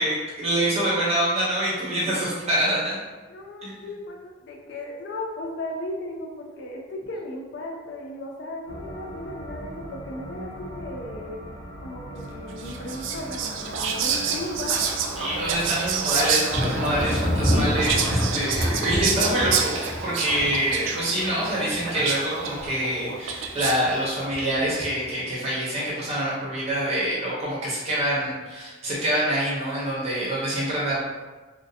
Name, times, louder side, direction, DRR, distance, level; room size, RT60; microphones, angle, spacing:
voice 1, 0.0-3.0 3.6-3.7 15.2-31.0, right 1 dB, 35° right, -7 dB, 0.6 m, -26 dB
voice 2, 3.3-11.4 11.8-14.8, left 1 dB, 65° left, 0 dB, 0.4 m, -36 dB
sound 1, 8.6-16.7, right 1 dB, 80° left, 1.0 m, -40 dB
Whispering, 12.6-24.0, right 6 dB, 70° right, 0.3 m, -28 dB
Thunder, 16.5-23.0 23.3-23.9 24.3-25.2, equal, 30° left, 0.8 m, -28 dB
2.4 x 2.2 x 2.6 m, 1.2 s
head